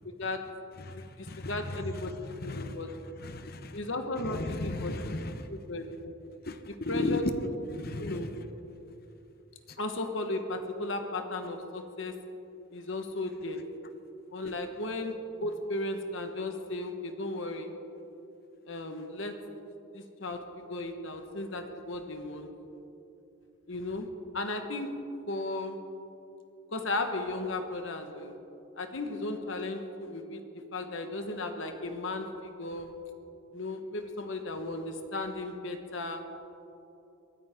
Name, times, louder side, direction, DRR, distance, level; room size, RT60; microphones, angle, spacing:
voice 1, 0.0-0.4 0.9-2.9 3.7-4.9 5.5-6.1 6.9-7.6 8.0-8.3 9.8-12.1 12.7-13.6 14.3-17.7 18.7-19.3 19.9-22.5 23.7-24.1 24.3-24.9 25.3-25.8 26.7-28.3 28.8-32.9 33.5-36.2, left 2 dB, 65° left, 6 dB, 1.4 m, -35 dB
voice 2, 0.8-3.8 4.2-5.5 6.4-7.4 7.7-8.4 9.7-9.8, left 2 dB, 45° left, 10 dB, 0.8 m, -36 dB
22.5 x 14.0 x 3.7 m, 2.8 s
head